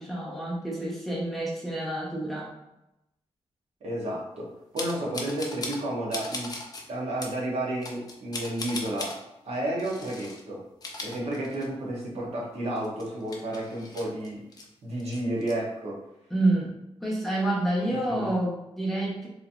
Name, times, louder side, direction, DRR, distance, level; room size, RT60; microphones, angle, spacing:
voice 1, 0.0-2.5 16.3-16.7 17.0-19.3, right 1 dB, ahead, -5 dB, 0.9 m, -28 dB
voice 2, 3.8-6.5 6.9-9.2 9.4-10.6 11.0-14.5 14.8-16.0 18.0-18.3, right 1 dB, 70° right, -4 dB, 0.9 m, -31 dB
sound 1, 4.8-5.8 6.1-6.8 7.2-7.4 7.8-9.2 9.8-10.4 10.7-11.9 12.2-12.3 12.8-14.7 15.0-15.5, left 2 dB, 35° left, 0.5 m, -38 dB
3.0 x 2.7 x 2.5 m, 0.90 s
wide cardioid pair, 115°, 11 cm